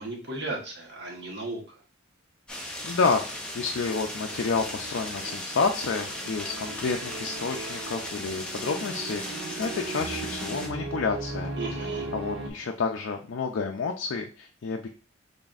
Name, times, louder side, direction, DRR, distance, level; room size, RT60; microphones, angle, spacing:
voice 1, 0.0-1.8 11.6-12.1, right 2 dB, 55° right, -1 dB, 1.1 m, -35 dB
sound 1, 2.5-10.7, left 1 dB, 5° left, 0.5 m, -37 dB
voice 2, 2.8-11.5 12.1-14.9, left 4 dB, 60° left, 2 dB, 0.4 m, -29 dB
sound 2, 3.4-12.5, right 3 dB, 75° right, 0.8 m, -38 dB
4.0 x 3.4 x 2.4 m, 0.37 s
head